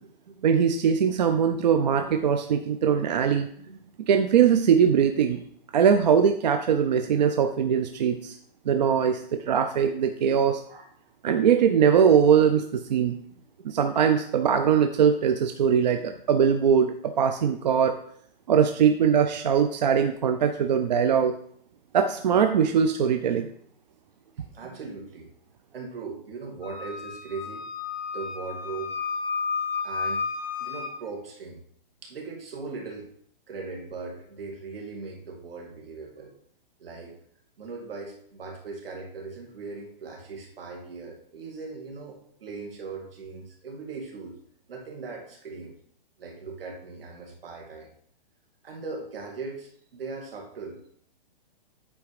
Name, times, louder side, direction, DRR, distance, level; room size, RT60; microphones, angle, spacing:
voice 1, 0.4-3.5 4.1-5.4 5.7-8.4 8.7-10.6 11.2-13.2 13.6-17.9 18.5-21.4 21.9-23.5, right 7 dB, 50° right, 7 dB, 0.5 m, -21 dB
voice 2, 24.4-25.3 25.7-27.7 28.1-28.9 29.8-30.2 30.6-31.6 32.0-33.1 33.5-36.3 36.8-37.1 37.6-44.4 44.7-45.7 46.2-47.9 48.6-50.9, right 4 dB, 75° right, 1 dB, 2.3 m, -39 dB
Wind instrument woodwind instrument, 26.6-30.9, left 5 dB, 20° left, 0.7 m, -32 dB
8.7 x 3.5 x 4.8 m, 0.64 s
hypercardioid pair, 170°, 29 cm